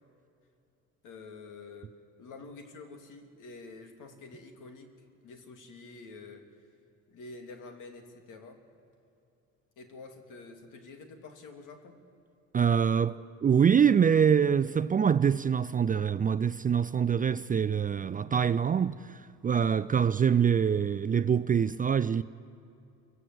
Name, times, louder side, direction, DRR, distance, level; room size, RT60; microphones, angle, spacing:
voice 1, 1.0-1.9 2.2-4.9 5.2-6.5 7.1-8.6 9.8-12.0, left 3 dB, 60° left, 2.9 m, -48 dB
voice 2, 12.5-22.2, right 7 dB, 25° right, 0.5 m, -25 dB
24.5 x 15.5 x 8.0 m
supercardioid pair, 90°, 35 cm